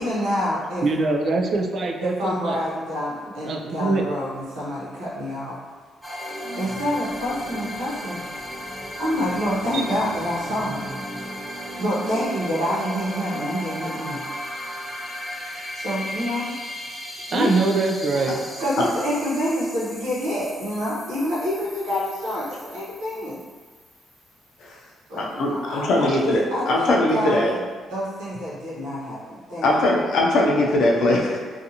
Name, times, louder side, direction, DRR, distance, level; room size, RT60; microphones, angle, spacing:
voice 1, 0.0-0.8 2.0-5.5 6.6-8.2 9.0-10.9 11.8-14.2 15.7-16.5 17.3-17.6 18.1-23.4 25.1-27.4 27.9-29.7, equal, 90° right, -8 dB, 0.9 m, -27 dB
voice 2, 0.8-2.6 3.4-4.1 9.7-9.8 17.3-18.4, right 3 dB, 55° right, 2 dB, 0.3 m, -23 dB
sound 1, 6.0-24.5, equal, ahead, 0.5 m, -35 dB
voice 3, 25.2-27.5 29.6-31.4, left 1 dB, 75° left, -3 dB, 0.5 m, -20 dB
2.6 x 2.4 x 2.7 m, 1.5 s
cardioid pair, 90°, 0 cm